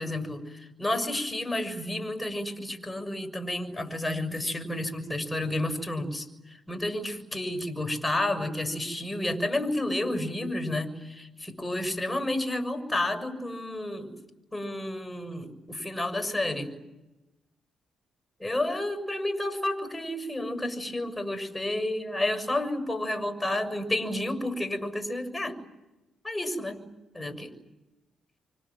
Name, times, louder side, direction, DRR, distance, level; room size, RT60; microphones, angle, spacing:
voice 1, 0.0-14.2 14.5-16.7 18.4-25.6 26.2-26.8 27.1-27.6, left 1 dB, 15° left, 6 dB, 6.9 m, -31 dB
29.5 x 26.0 x 7.7 m, 0.99 s
supercardioid pair, 60°, 0 cm